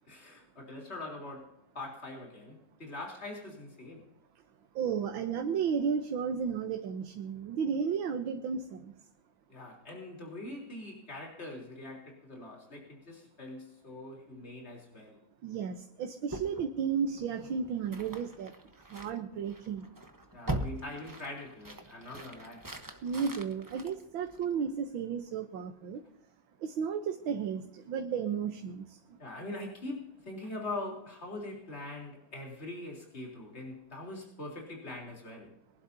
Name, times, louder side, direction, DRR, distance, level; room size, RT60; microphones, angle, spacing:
voice 1, 0.1-4.1 9.5-15.2 20.3-22.7 29.2-35.6, left 2 dB, 30° left, 3.9 m, -43 dB
voice 2, 4.8-8.9 15.4-18.5 18.9-19.9 23.0-26.0 26.6-29.2, right 6 dB, 85° right, 1.8 m, -33 dB
sound 1, 16.3-24.7, right 1 dB, 15° right, 0.8 m, -42 dB
23.0 x 11.5 x 2.8 m
omnidirectional pair, 2.1 m